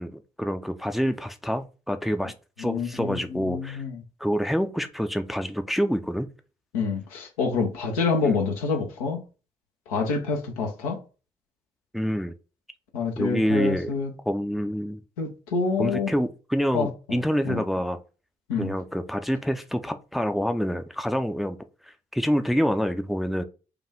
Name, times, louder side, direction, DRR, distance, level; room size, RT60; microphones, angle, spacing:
voice 1, 0.0-3.8 4.2-6.3 8.2-8.4 11.9-12.3 13.2-13.9 14.3-15.0 15.8-18.0 18.6-21.6 22.1-23.4, equal, ahead, 0.5 m, -27 dB
voice 2, 2.6-4.0 6.7-9.2 9.9-11.0 12.9-14.1 15.2-16.1 16.7-17.6 18.5-18.7, left 4 dB, 75° left, 0.9 m, -27 dB
4.8 x 2.5 x 3.5 m
figure-of-eight pair, 40°, 19 cm